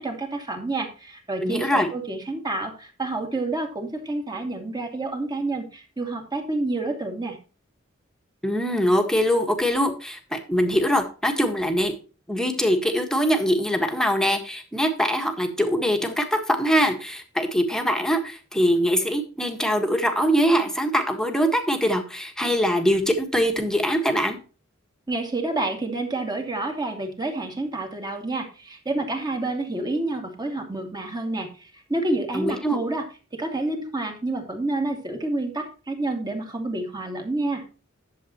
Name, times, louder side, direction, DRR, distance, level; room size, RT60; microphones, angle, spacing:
voice 1, 0.0-7.4 25.1-33.0 33.3-37.6, right 2 dB, 20° right, 3 dB, 2.3 m, -29 dB
voice 2, 1.4-1.9 8.4-11.9 12.3-24.4 32.3-32.8, equal, 5° left, 4 dB, 1.6 m, -23 dB
11.5 x 7.6 x 3.0 m, 0.35 s
head